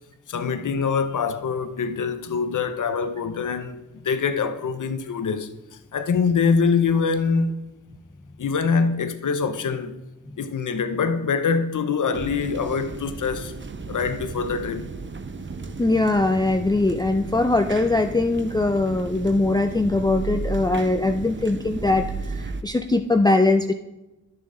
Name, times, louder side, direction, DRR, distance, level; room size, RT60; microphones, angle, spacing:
voice 1, 0.3-7.6 8.4-10.0 10.4-13.5 13.9-14.9, left 5 dB, 75° left, 0.8 m, -24 dB
sound 1, 12.1-22.6, right 4 dB, 40° right, 0.7 m, -34 dB
voice 2, 15.8-23.7, left 2 dB, 15° left, 0.5 m, -21 dB
11.0 x 6.8 x 3.8 m
cardioid pair, 65°, 32 cm